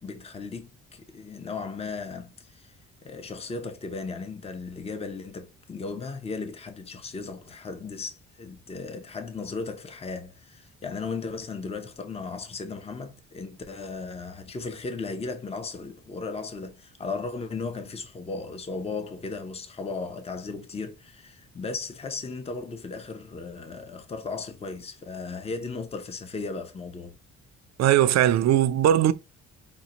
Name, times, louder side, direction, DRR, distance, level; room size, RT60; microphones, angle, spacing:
voice 1, 0.0-2.7 3.0-27.1, left 4 dB, 20° left, 0.6 m, -36 dB
voice 2, 27.8-29.1, right 11 dB, 60° right, 0.5 m, -19 dB
5.2 x 2.1 x 2.9 m
cardioid pair, 90°, 30 cm